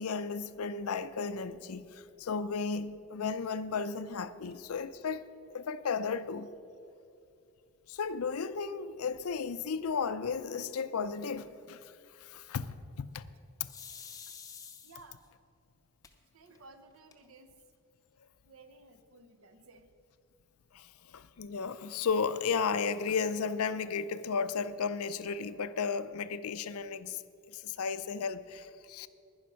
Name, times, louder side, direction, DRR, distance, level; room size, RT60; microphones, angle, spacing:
voice 1, 0.0-6.5 7.9-13.3 20.7-27.2 27.5-29.1, left 5 dB, 80° left, 0.5 m, -34 dB
sound 1, 13.7-15.3 16.0-16.1 16.5-16.6 16.9-17.5, left 6 dB, 15° left, 0.7 m, -48 dB
voice 2, 14.8-15.2 16.3-17.6 18.5-19.9, right 3 dB, 70° right, 0.9 m, -56 dB
11.0 x 10.5 x 5.7 m
head